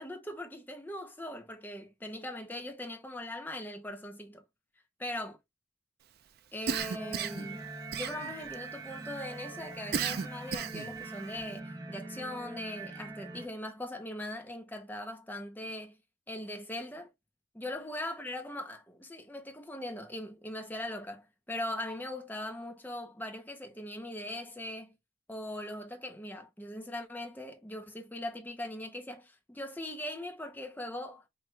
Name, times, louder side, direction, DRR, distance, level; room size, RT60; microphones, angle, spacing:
voice 1, 0.0-4.4 5.0-5.4 6.5-7.7 7.9-16.0 16.3-17.1 17.5-25.0 25.3-31.2, left 1 dB, 10° left, 0.8 m, -40 dB
Cough, 6.7-7.5 7.9-8.5 9.9-10.9, right 7 dB, 50° right, 0.4 m, -33 dB
sound 1, 6.8-13.5, right 3 dB, 20° right, 0.9 m, -43 dB
4.5 x 2.4 x 3.3 m
head